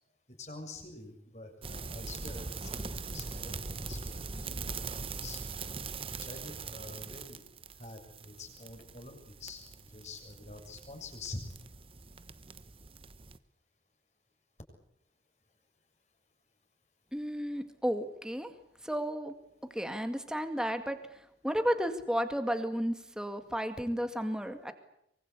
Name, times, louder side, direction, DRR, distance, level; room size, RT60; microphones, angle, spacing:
voice 1, 0.3-5.4 6.2-7.4 7.7-11.5, left 2 dB, 40° left, 4 dB, 6.9 m, -46 dB
sound 1, 1.6-13.4, right 4 dB, 30° right, 1.1 m, -42 dB
voice 2, 17.1-18.5 18.8-19.3 19.7-21.0 21.4-24.7, equal, 5° right, 7 dB, 2.1 m, -33 dB
24.5 x 24.0 x 8.4 m, 0.77 s
head